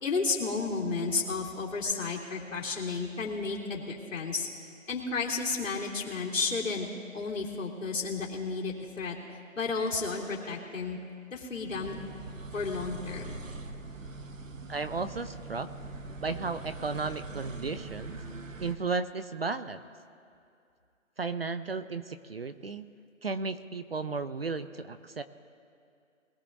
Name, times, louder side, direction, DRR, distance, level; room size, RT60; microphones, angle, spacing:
voice 1, 0.0-4.5 4.9-6.9 7.1-9.2 9.6-11.0 11.3-12.0 12.5-13.3, left 4 dB, 70° left, -3 dB, 3.0 m, -32 dB
sound 1, 11.5-18.8, right 3 dB, 75° right, 1.2 m, -42 dB
voice 2, 14.7-15.7 16.2-18.2 18.6-19.8 21.2-22.9 23.2-25.2, right 4 dB, 50° right, 11 dB, 0.6 m, -34 dB
22.0 x 16.5 x 2.6 m, 2.4 s
figure-of-eight pair, 165°, 40 cm